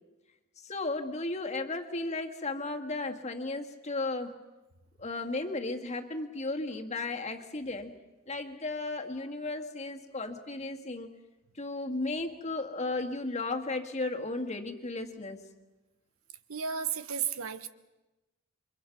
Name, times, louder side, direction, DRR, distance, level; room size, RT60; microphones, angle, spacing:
voice 1, 0.6-4.4 5.0-7.9 8.3-11.1 11.6-15.4, left 2 dB, 30° left, 3 dB, 1.9 m, -35 dB
voice 2, 16.5-17.7, right 7 dB, 80° right, 12 dB, 1.2 m, -33 dB
29.0 x 24.5 x 6.0 m, 1.1 s
head